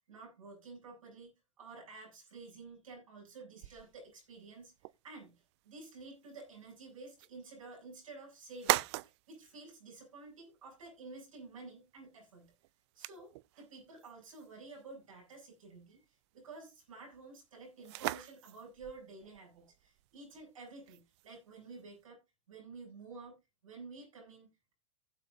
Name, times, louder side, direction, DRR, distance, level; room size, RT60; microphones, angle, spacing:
voice 1, 0.1-1.3 1.6-4.7 5.0-5.3 5.6-12.5 12.9-16.0 16.3-22.2 22.5-23.4 23.6-24.7, right 3 dB, 85° right, 7.6 m, -51 dB
sound 1, 3.6-22.0, right 19 dB, 55° right, 0.5 m, -43 dB
16.0 x 7.6 x 2.7 m
hypercardioid pair, 110°, 17 cm